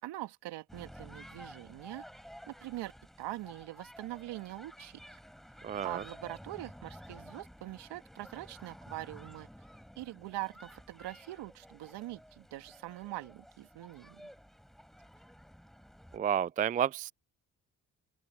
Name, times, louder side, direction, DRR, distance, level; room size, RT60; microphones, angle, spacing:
voice 1, 0.0-2.0 2.5-2.9 3.2-5.0 5.8-9.5 10.0-14.2, right 16 dB, 70° right, 2.5 m, -43 dB
sound 1, 0.7-16.2, equal, ahead, 6.2 m, -53 dB
voice 2, 5.6-6.0 16.1-17.1, right 9 dB, 20° right, 0.3 m, -31 dB
open air
hypercardioid pair, 50°, 42 cm